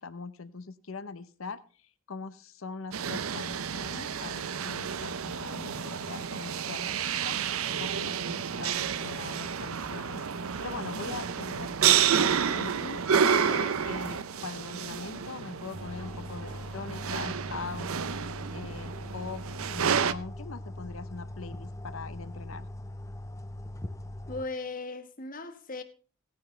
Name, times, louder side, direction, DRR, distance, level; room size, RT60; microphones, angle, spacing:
voice 1, 0.0-7.4 7.8-17.9 18.5-22.7, left 4 dB, 75° left, 0.8 m, -42 dB
sound 1, 2.9-20.1, right 7 dB, 85° right, 0.6 m, -30 dB
sound 2, 5.1-19.3, right 1 dB, 65° right, 4.3 m, -50 dB
sound 3, 15.7-24.5, left 1 dB, 15° left, 0.6 m, -41 dB
voice 2, 24.3-25.8, left 3 dB, 40° left, 1.4 m, -37 dB
17.5 x 9.4 x 3.3 m
head